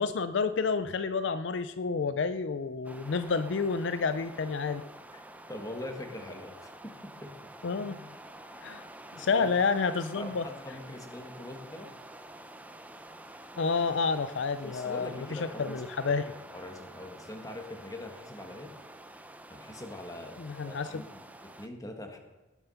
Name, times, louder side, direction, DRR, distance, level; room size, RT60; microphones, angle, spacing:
voice 1, 0.0-4.8 7.6-8.1 8.6-8.8 9.2-10.4 13.6-16.2 20.4-21.0, left 4 dB, 65° left, 12 dB, 0.5 m, -29 dB
sound 1, 2.8-21.7, right 1 dB, 10° right, 0.6 m, -48 dB
voice 2, 5.5-7.5 9.1-9.5 10.2-11.9 14.6-16.2 16.5-18.7 19.5-20.3 20.6-22.2, left 1 dB, 20° left, 3 dB, 1.7 m, -43 dB
19.0 x 7.2 x 5.7 m, 1.1 s
head